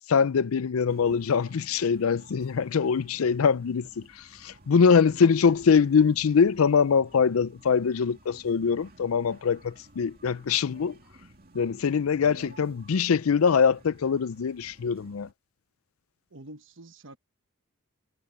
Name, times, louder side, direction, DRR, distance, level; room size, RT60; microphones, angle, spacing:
voice 1, 0.1-3.9 4.4-11.0 11.5-15.3, left 6 dB, 85° left, 0.5 m, -23 dB
sound 1, 0.9-15.3, right 2 dB, 45° right, 2.6 m, -55 dB
voice 2, 12.2-12.8 16.3-17.2, right 1 dB, 65° right, 1.2 m, -48 dB
head